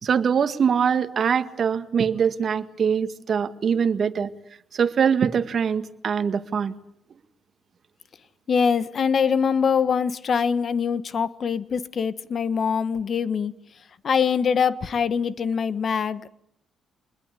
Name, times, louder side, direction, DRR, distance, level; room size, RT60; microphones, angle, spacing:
voice 1, 0.0-4.3 4.7-6.8, right 7 dB, 50° right, 1.7 m, -23 dB
voice 2, 8.5-13.5 14.0-16.3, left 6 dB, 50° left, 1.4 m, -23 dB
26.5 x 21.0 x 8.5 m
cardioid pair, 90°, 0 cm